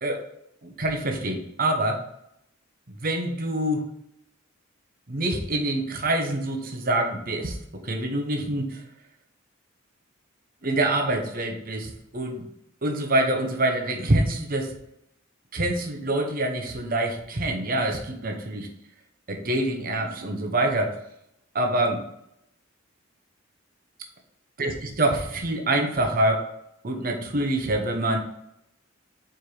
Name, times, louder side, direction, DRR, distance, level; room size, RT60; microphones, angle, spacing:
voice 1, 0.6-2.0 2.9-3.9 5.1-8.8 10.6-12.4 12.8-14.7 15.5-18.7 19.3-21.0 21.5-22.0 24.6-26.5 26.8-28.2, right 1 dB, 45° right, 3 dB, 0.9 m, -26 dB
4.8 x 4.5 x 4.9 m, 0.79 s
head